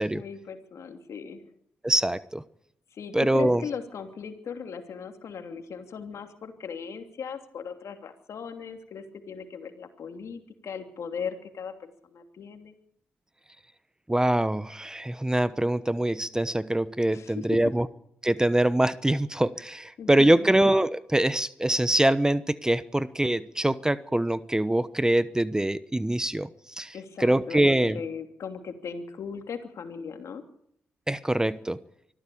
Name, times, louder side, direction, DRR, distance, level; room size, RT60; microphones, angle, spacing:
voice 1, 0.1-1.4 2.9-12.8 17.1-17.5 20.0-20.5 26.9-30.4, left 6 dB, 70° left, 6 dB, 2.9 m, -38 dB
voice 2, 1.8-2.4 3.1-3.6 14.1-17.9 18.2-26.5 26.8-28.0 31.1-31.8, right 1 dB, 10° right, 15 dB, 1.0 m, -24 dB
24.5 x 14.0 x 8.7 m, 0.72 s
supercardioid pair, 50°, 5 cm